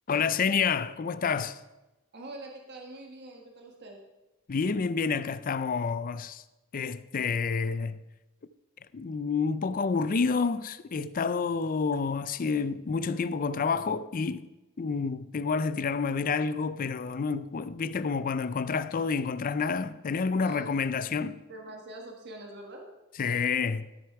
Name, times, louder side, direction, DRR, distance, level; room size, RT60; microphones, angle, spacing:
voice 1, 0.1-1.6 4.5-6.4 6.7-8.0 8.9-14.5 14.8-21.4 23.2-23.9, left 5 dB, 40° left, 0.4 m, -29 dB
voice 2, 2.1-4.0 20.4-21.0 21.5-22.8, right 2 dB, 50° right, 1.3 m, -44 dB
13.0 x 6.9 x 4.7 m
head